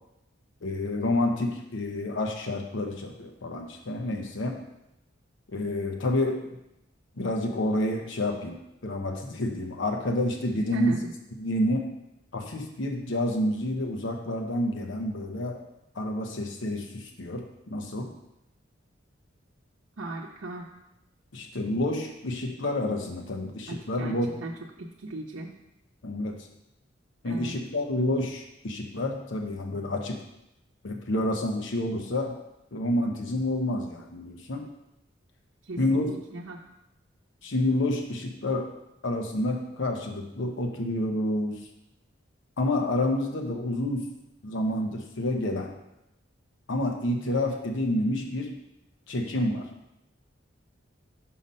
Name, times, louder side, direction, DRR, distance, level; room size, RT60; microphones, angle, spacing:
voice 1, 0.6-4.6 5.5-6.4 7.2-8.6 8.8-11.0 11.4-11.9 12.3-15.6 15.9-18.1 21.3-24.4 26.0-26.4 27.2-30.2 30.8-32.4 32.7-34.7 35.8-36.1 37.4-38.7 39.0-41.6 42.6-44.1 44.4-45.7 46.7-48.6 49.1-49.7, left 1 dB, 70° left, 3 dB, 0.7 m, -29 dB
voice 2, 10.7-11.1 20.0-20.7 23.7-24.5 24.8-25.5 27.3-27.5 35.6-36.6, right 2 dB, 80° right, -3 dB, 0.7 m, -37 dB
5.7 x 5.4 x 5.3 m, 0.87 s
head